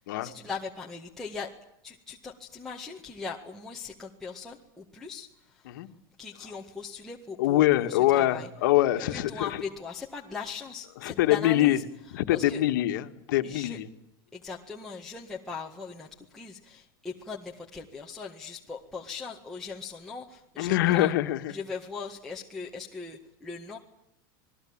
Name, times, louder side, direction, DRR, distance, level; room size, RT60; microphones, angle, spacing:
voice 1, 0.2-1.5 1.8-5.7 6.2-8.5 9.1-11.8 12.3-12.6 13.4-13.8 14.3-21.1 21.5-23.8, left 5 dB, 5° left, -3 dB, 1.9 m, -39 dB
voice 2, 7.4-9.5 11.0-11.8 12.1-13.9 20.6-21.5, left 14 dB, 60° left, 8 dB, 2.1 m, -24 dB
27.5 x 20.5 x 8.9 m, 0.78 s
supercardioid pair, 175°, 12 cm